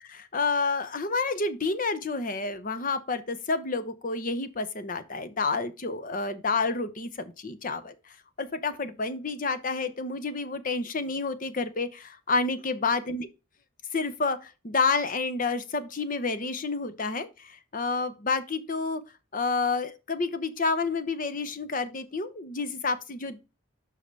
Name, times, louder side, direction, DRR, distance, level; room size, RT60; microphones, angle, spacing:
voice 1, 0.1-13.3 13.9-19.0 19.3-23.5, left 4 dB, 40° left, 0.7 m, -29 dB
5.8 x 5.2 x 5.3 m
head